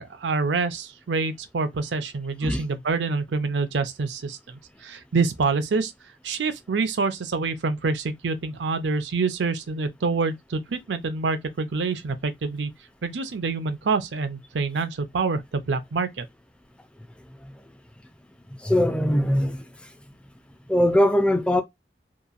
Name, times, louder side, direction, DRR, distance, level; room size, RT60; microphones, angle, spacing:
voice 1, 0.0-5.9 6.2-12.7 13.0-16.3, right 4 dB, 85° right, 0.5 m, -26 dB
voice 2, 18.6-19.6 20.7-21.6, left 1 dB, 5° left, 0.4 m, -21 dB
2.9 x 2.3 x 2.4 m
head